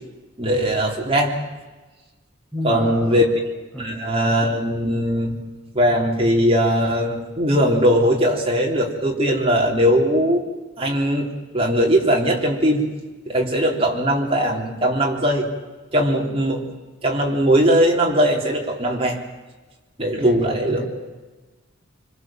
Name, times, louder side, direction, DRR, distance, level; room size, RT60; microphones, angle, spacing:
voice 1, 0.4-1.4 2.6-3.3 3.8-5.3 5.7-10.5 10.8-11.3 11.5-12.8 13.3-15.5 15.9-16.6 17.0-19.2 20.0-20.8, equal, 25° right, -1 dB, 3.7 m, -19 dB
voice 2, 2.5-3.3 3.7-4.0 20.2-20.8, equal, ahead, -4 dB, 6.9 m, -30 dB
26.0 x 25.0 x 7.5 m, 1.2 s
head